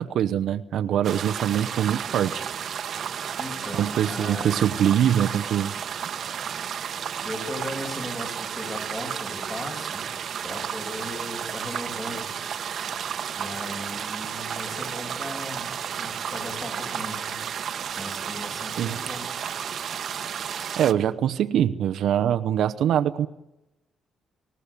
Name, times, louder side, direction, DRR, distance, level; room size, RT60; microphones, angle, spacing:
voice 1, 0.0-2.4 3.7-5.7 18.8-19.0 20.8-23.3, right 10 dB, 75° right, 9 dB, 0.9 m, -23 dB
sound 1, 1.0-20.9, right 8 dB, 60° right, 1.2 m, -32 dB
voice 2, 3.4-4.7 7.2-10.1 10.4-12.3 13.3-17.4 18.0-19.3, left 1 dB, 20° left, 3 dB, 7.7 m, -37 dB
29.0 x 15.5 x 8.5 m, 0.93 s
cardioid pair, 90°, 0 cm